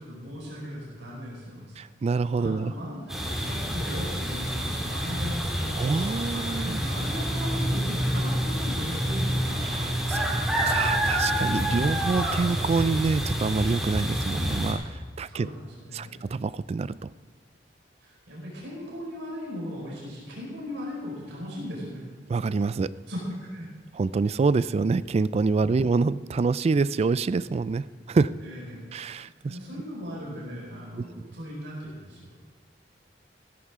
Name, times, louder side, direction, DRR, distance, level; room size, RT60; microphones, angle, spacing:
voice 1, 0.0-1.8 2.4-9.9 15.3-16.2 18.0-22.0 23.1-23.7 28.1-28.8 29.4-32.3, equal, 85° right, -5 dB, 4.8 m, -38 dB
voice 2, 1.8-2.7 5.8-6.8 9.6-10.3 10.7-15.5 15.9-16.9 22.3-22.9 24.0-28.3 28.9-29.5 31.0-31.1, right 4 dB, 35° right, 17 dB, 0.3 m, -26 dB
sound 1, 3.1-14.7, equal, ahead, 2.3 m, -28 dB
16.0 x 14.0 x 3.7 m, 1.5 s
head